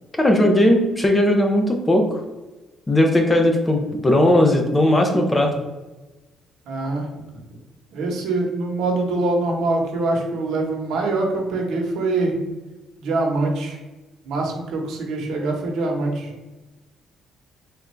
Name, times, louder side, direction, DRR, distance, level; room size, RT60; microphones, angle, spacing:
voice 1, 0.2-2.0 2.9-5.5, left 1 dB, 15° left, 3 dB, 0.5 m, -17 dB
voice 2, 6.7-7.1 7.9-12.3 13.0-13.8 14.2-16.3, right 2 dB, 75° right, 1 dB, 1.0 m, -24 dB
3.4 x 2.5 x 4.3 m, 1.1 s
cardioid pair, 145°, 0 cm